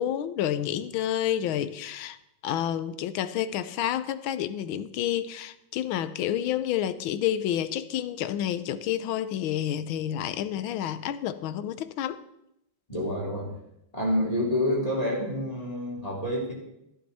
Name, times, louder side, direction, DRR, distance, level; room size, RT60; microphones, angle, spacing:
voice 1, 0.0-2.2 2.4-12.2, left 10 dB, 75° left, 1.5 m, -29 dB
voice 2, 12.9-13.5 13.9-16.5, left 1 dB, 15° left, 3.1 m, -28 dB
14.0 x 12.0 x 4.2 m
omnidirectional pair, 2.3 m